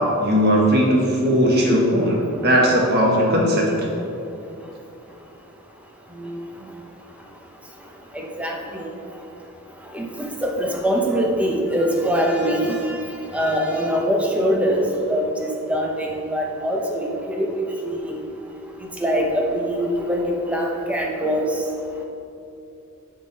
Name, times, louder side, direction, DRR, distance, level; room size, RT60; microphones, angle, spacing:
voice 1, 0.2-3.7, equal, 50° right, -2 dB, 1.4 m, -18 dB
voice 2, 8.1-8.9 9.9-12.9 13.3-18.2 19.0-21.5, equal, 5° right, 0 dB, 0.8 m, -23 dB
11.0 x 3.8 x 4.0 m, 2.8 s
head